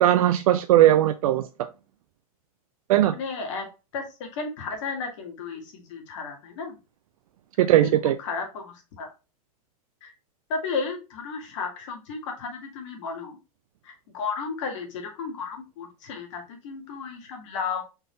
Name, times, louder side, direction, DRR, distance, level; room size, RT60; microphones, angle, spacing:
voice 1, 0.0-1.5 2.9-3.2 7.6-8.2, right 13 dB, 70° right, 0.4 m, -18 dB
voice 2, 3.1-3.7 3.9-6.8 8.2-9.1 10.0-10.1 10.5-13.4 13.8-17.8, left 5 dB, 55° left, 1.9 m, -33 dB
4.3 x 3.5 x 3.3 m
supercardioid pair, 150°, 19 cm